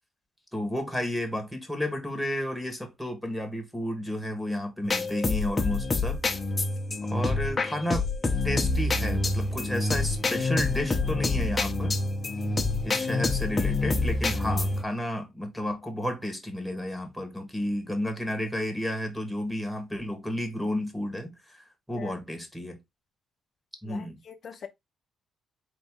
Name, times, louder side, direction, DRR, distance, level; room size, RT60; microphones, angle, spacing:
voice 1, 0.5-6.2 7.1-8.1 8.4-11.9 12.8-22.8 23.8-24.2, left 1 dB, ahead, 1.5 m, -32 dB
sound 1, 4.8-14.8, left 3 dB, 25° left, 0.9 m, -27 dB
voice 2, 23.9-24.7, left 7 dB, 55° left, 0.7 m, -42 dB
3.9 x 2.9 x 3.7 m
cardioid pair, 90°, 0 cm